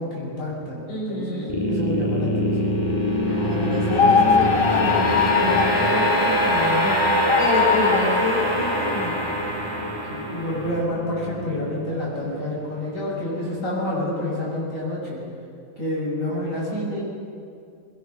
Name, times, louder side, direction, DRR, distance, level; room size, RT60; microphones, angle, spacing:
voice 1, 0.0-2.8 10.1-15.2 15.8-17.0, left 1 dB, 40° left, -5 dB, 7.2 m, -28 dB
voice 2, 0.9-1.6 3.2-9.2, left 2 dB, 85° left, -4 dB, 5.2 m, -28 dB
sound 1, 1.5-12.7, equal, 10° left, 2.9 m, -23 dB
sound 2, 3.9-5.7 7.0-8.1, left 6 dB, 70° left, 0.5 m, -20 dB
22.5 x 22.5 x 5.9 m, 2.4 s
omnidirectional pair, 2.1 m